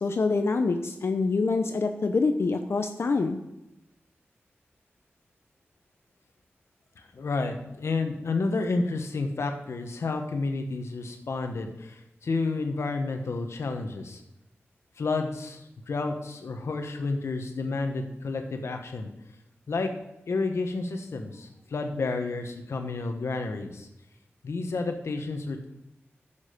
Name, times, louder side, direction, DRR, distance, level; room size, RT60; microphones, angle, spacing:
voice 1, 0.0-3.4, left 3 dB, 70° left, 6 dB, 0.7 m, -25 dB
voice 2, 7.0-14.2 15.0-19.1 19.7-19.9 20.3-23.9 24.4-25.7, left 3 dB, 85° left, 5 dB, 1.3 m, -30 dB
11.0 x 7.3 x 5.2 m, 0.87 s
wide cardioid pair, 75°, 5 cm